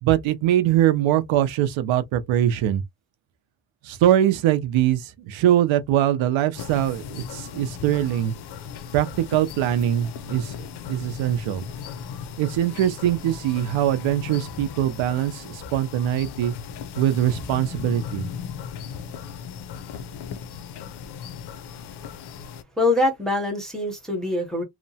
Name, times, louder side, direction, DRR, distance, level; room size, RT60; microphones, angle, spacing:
voice 1, 0.0-2.8 3.8-8.3 8.9-11.6 12.4-16.5 17.0-18.3, right 11 dB, 75° right, 0.6 m, -22 dB
sound 1, 6.5-22.6, left 7 dB, 55° left, 0.5 m, -37 dB
voice 2, 22.8-24.6, left 2 dB, ahead, 0.7 m, -23 dB
2.8 x 2.1 x 2.7 m
cardioid pair, 170°, 47 cm